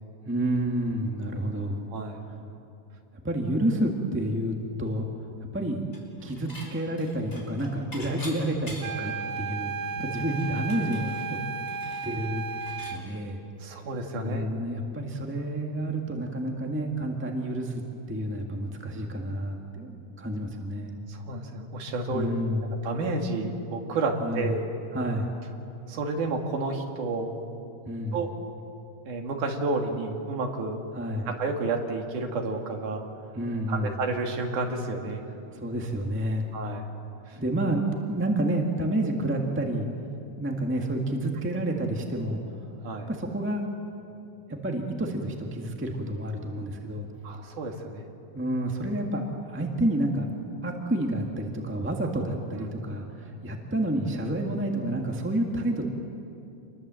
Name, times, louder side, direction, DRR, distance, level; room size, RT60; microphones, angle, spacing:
voice 1, 0.2-1.8 2.3-2.4 3.2-5.1 5.5-5.8 6.2-11.4 12.0-13.4 14.2-17.8 18.1-21.0 22.1-22.7 24.2-24.5 24.9-25.3 27.8-28.2 30.9-31.3 33.3-33.9 35.5-36.5 37.3-39.9 40.4-42.7 43.1-43.6 44.6-47.1 48.3-50.3 50.6-55.9, right 1 dB, 5° right, 1 dB, 0.9 m, -29 dB
voice 2, 1.9-2.2 13.6-14.5 21.1-22.3 22.8-24.6 25.9-27.3 28.1-28.3 29.1-30.8 31.3-33.0 33.7-35.2 36.5-36.8 37.3-37.4 42.8-43.1 47.2-48.0 52.5-52.7, right 3 dB, 70° right, 2 dB, 3.5 m, -30 dB
Dishes pots and pans / Chink clink, 5.9-6.7 7.0-9.1 9.5-9.6 9.9-13.0, left 1 dB, 20° left, 5.0 m, -44 dB
sound 1, 8.8-13.1, right 5 dB, 85° right, 1.3 m, -34 dB
28.0 x 21.5 x 7.7 m, 2.8 s
omnidirectional pair, 3.7 m